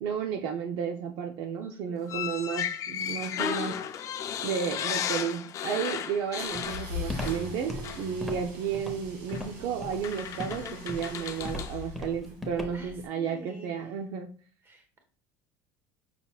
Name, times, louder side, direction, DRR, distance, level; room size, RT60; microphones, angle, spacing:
voice 1, 0.0-3.7 4.4-14.3, right 7 dB, 65° right, 4 dB, 0.6 m, -32 dB
voice 2, 1.6-2.0 10.5-10.8 12.7-13.9 14.6-15.0, right 1 dB, 30° right, 5 dB, 1.3 m, -48 dB
sound 1, 2.1-7.6 7.8-8.1 9.3-9.4 10.0-11.8, left 9 dB, 40° left, 0.5 m, -34 dB
sound 2, 6.4-12.4, left 1 dB, 85° right, 1.7 m, -41 dB
Walk footsteps, 6.6-13.0, left 2 dB, ahead, 0.9 m, -38 dB
5.8 x 3.9 x 2.4 m, 0.43 s
cardioid pair, 125°, 8 cm